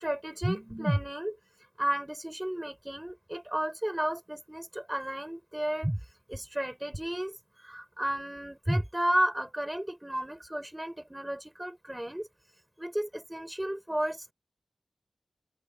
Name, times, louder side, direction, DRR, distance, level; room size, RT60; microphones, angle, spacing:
voice 1, 0.0-1.4 1.8-6.0 6.3-7.3 7.6-12.3 12.8-14.3, right 1 dB, 10° right, 5.3 m, -32 dB
open air
wide cardioid pair, 60°, 0 cm